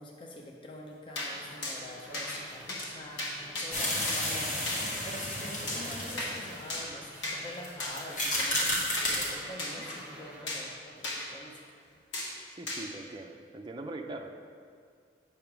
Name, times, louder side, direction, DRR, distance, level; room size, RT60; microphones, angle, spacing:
voice 1, 0.0-11.6, left 1 dB, 30° left, -1 dB, 0.6 m, -45 dB
sound 1, 1.1-1.3 1.6-1.8 2.1-2.4 2.7-2.9 3.2-3.7 4.1-4.3 4.7-4.8 5.7-6.3 6.7-6.9 7.2-7.4 7.8-7.9 8.4-8.7 9.0-9.1 9.6-10.0 10.5-10.7 11.0-11.2 12.1-12.3 12.7-12.8, left 2 dB, 90° left, 1.5 m, -35 dB
sound 2, 1.3-10.8, equal, 5° right, 1.0 m, -50 dB
sound 3, 3.7-6.6 7.5-7.7 7.9-9.3, left 1 dB, 50° left, 1.5 m, -32 dB
voice 2, 12.5-14.3, right 2 dB, 25° right, 3 dB, 0.4 m, -41 dB
8.2 x 3.5 x 5.8 m, 2.1 s
head